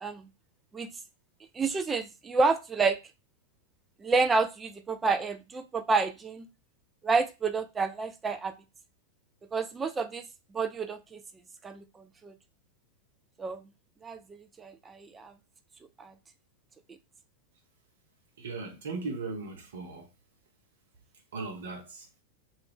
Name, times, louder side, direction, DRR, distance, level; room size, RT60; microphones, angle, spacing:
voice 1, 1.5-3.0 4.0-6.5 7.0-8.5 9.5-10.2 10.5-11.2 11.6-11.8 12.2-12.3 13.4-13.6 14.0-15.3 16.0-16.1, right 4 dB, 15° right, 0.3 m, -29 dB
voice 2, 18.4-20.1 21.3-22.1, right 3 dB, 60° right, 0.9 m, -37 dB
2.4 x 2.4 x 3.4 m
figure-of-eight pair, 90°, 0 cm